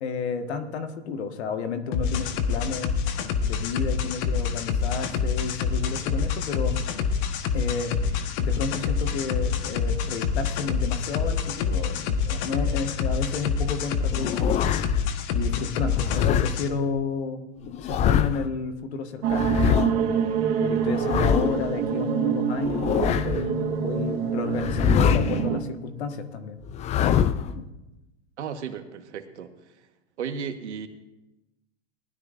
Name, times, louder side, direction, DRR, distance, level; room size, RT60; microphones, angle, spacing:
voice 1, 0.0-3.0 3.4-6.8 7.5-7.9 8.4-14.7 15.3-17.4 17.8-20.2 20.6-26.6 27.6-27.7, left 5 dB, 70° left, 7 dB, 1.6 m, -31 dB
sound 1, 1.9-16.7, left 6 dB, 50° left, 1.3 m, -27 dB
sound 2, 14.1-15.1 15.9-16.5 17.6-18.5 19.3-19.9 20.8-21.7 22.6-23.5 24.5-25.4 26.7-27.6, left 9 dB, 20° left, 0.4 m, -24 dB
sound 3, 19.2-25.6, right 7 dB, 50° right, 1.6 m, -26 dB
voice 2, 28.4-29.9 30.2-30.9, right 7 dB, 80° right, 7 dB, 1.4 m, -35 dB
19.5 x 12.0 x 2.6 m, 1.0 s
hypercardioid pair, 110°, 34 cm